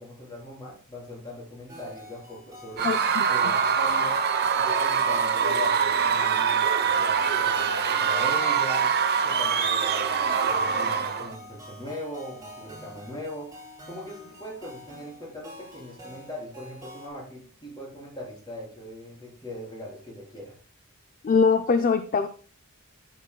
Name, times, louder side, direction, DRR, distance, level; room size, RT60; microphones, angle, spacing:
voice 1, 0.0-2.9 3.3-4.2 4.5-8.9 9.2-13.5 13.8-20.6, left 1 dB, 20° left, -3 dB, 3.8 m, -40 dB
sound 1, 1.7-17.1, equal, 15° right, 3.7 m, -47 dB
voice 2, 2.8-3.3 21.2-22.3, left 5 dB, 40° left, 9 dB, 0.4 m, -22 dB
Screaming / Cheering / Crowd, 2.8-11.3, right 6 dB, 45° right, 0.8 m, -24 dB
13.0 x 7.1 x 2.2 m, 0.42 s
head